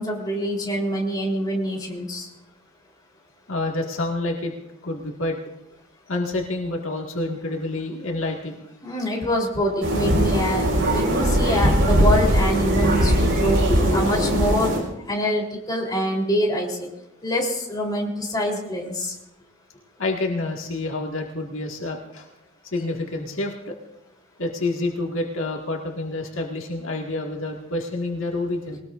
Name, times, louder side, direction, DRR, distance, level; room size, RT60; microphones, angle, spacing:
voice 1, 0.0-2.3 8.8-14.7 15.0-16.9 17.2-19.1, equal, 20° left, -2 dB, 3.7 m, -25 dB
voice 2, 3.5-4.5 4.8-5.4 6.1-8.6 20.0-22.3 22.7-23.8 24.4-28.8, left 2 dB, 70° left, 0 dB, 1.9 m, -28 dB
sound 1, 9.8-14.8, equal, 70° right, 5.3 m, -20 dB
22.5 x 19.0 x 2.6 m, 0.85 s
head